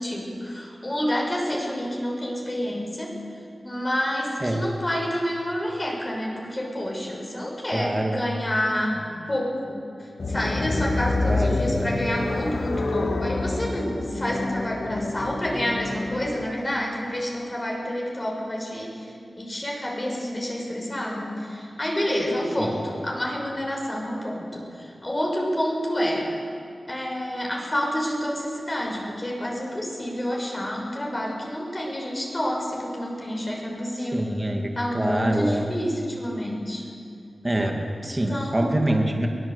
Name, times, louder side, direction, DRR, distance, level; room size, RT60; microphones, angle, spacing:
voice 1, 0.0-3.1 3.6-26.3 26.9-34.3 34.7-36.8 37.8-37.9 38.3-39.0, equal, 30° left, -2 dB, 5.9 m, -28 dB
voice 2, 7.7-8.2 11.3-11.9 22.6-22.7 34.0-35.7 37.4-39.3, right 1 dB, 25° right, 2 dB, 2.3 m, -25 dB
sound 1, 10.2-16.5, left 2 dB, 70° left, 1.5 m, -27 dB
23.5 x 16.0 x 8.1 m, 2.5 s
cardioid pair, 50°, 0 cm